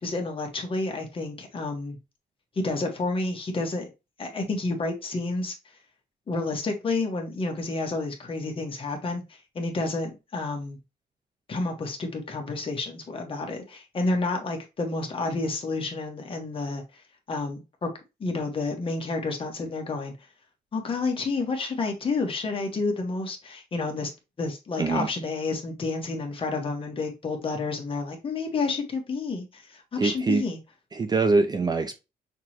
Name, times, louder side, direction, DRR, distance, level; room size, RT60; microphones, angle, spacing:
voice 1, 0.0-1.9 2.6-3.8 4.2-5.5 6.3-9.2 9.5-10.8 11.5-16.8 17.3-17.9 18.2-20.1 20.7-24.1 24.4-30.6, left 3 dB, 35° left, 1.3 m, -30 dB
voice 2, 24.8-25.1 30.0-30.5 30.9-32.0, right 3 dB, 25° right, 0.5 m, -24 dB
5.8 x 3.0 x 2.9 m
cardioid pair, 130°, 16 cm